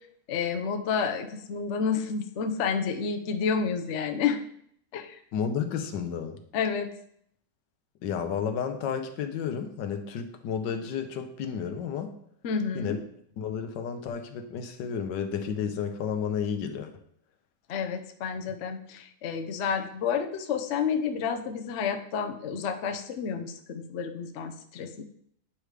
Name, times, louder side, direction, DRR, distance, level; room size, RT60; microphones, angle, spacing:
voice 1, 0.3-4.4 4.9-5.2 6.5-6.9 12.4-13.0 17.7-25.0, left 6 dB, 60° left, 5 dB, 0.8 m, -30 dB
voice 2, 5.3-6.4 8.0-12.1 12.7-13.0 13.4-16.9, left 7 dB, 80° left, 7 dB, 1.4 m, -32 dB
8.7 x 4.9 x 3.2 m, 0.67 s
omnidirectional pair, 1.9 m